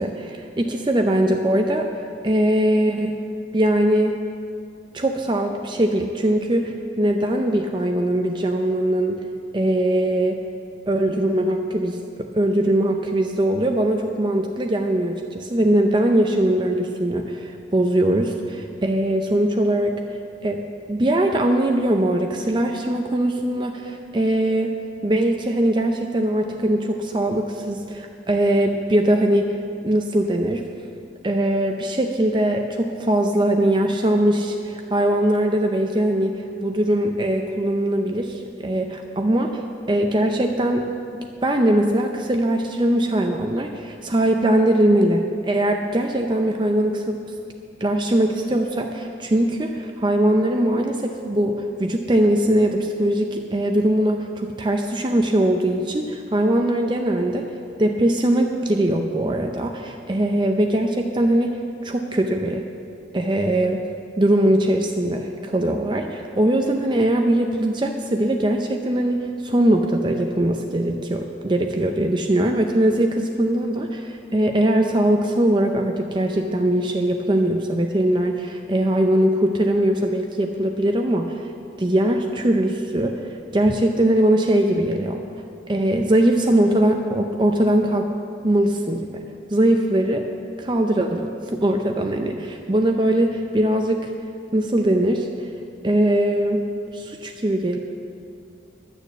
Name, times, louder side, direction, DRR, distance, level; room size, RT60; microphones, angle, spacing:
voice 1, 0.0-1.9 2.2-3.2 3.5-4.2 4.9-9.2 9.5-10.4 10.9-20.0 20.4-20.6 20.9-24.8 25.0-29.6 29.8-30.6 31.2-40.9 41.4-47.2 47.8-57.5 57.8-62.7 63.1-63.8 64.2-81.5 81.8-85.2 85.7-88.1 88.4-89.2 89.5-90.3 90.6-94.1 94.5-95.5 95.8-96.6 96.9-97.8, right 1 dB, 25° right, 3 dB, 0.5 m, -21 dB
12.0 x 6.7 x 8.1 m, 2.4 s
head